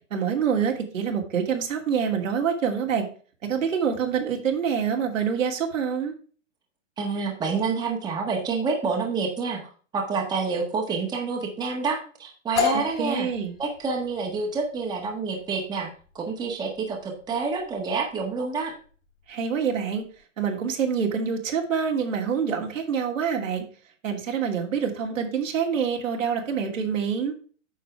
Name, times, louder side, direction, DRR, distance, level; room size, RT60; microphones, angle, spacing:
voice 1, 0.1-3.1 3.4-6.1 13.0-13.5 19.3-20.0 20.4-23.6 24.0-27.3, right 7 dB, 85° right, 1 dB, 2.7 m, -26 dB
voice 2, 7.0-13.3 13.6-15.9 16.1-18.7, right 4 dB, 10° right, 0 dB, 1.5 m, -28 dB
sound 1, 12.6-20.2, left 7 dB, 80° left, 3.9 m, -34 dB
9.1 x 6.3 x 3.4 m, 0.40 s
hypercardioid pair, 155°, 38 cm